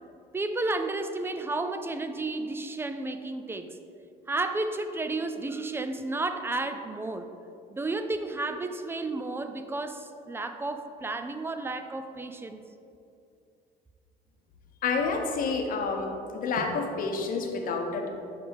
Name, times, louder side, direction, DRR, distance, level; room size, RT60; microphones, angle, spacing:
voice 1, 0.3-3.8 4.3-7.3 7.7-12.6, right 2 dB, 15° right, 8 dB, 0.3 m, -32 dB
voice 2, 14.8-16.1 16.3-18.1, left 4 dB, 55° left, 3 dB, 0.8 m, -29 dB
6.2 x 5.0 x 3.5 m, 2.6 s
cardioid pair, 110°, 17 cm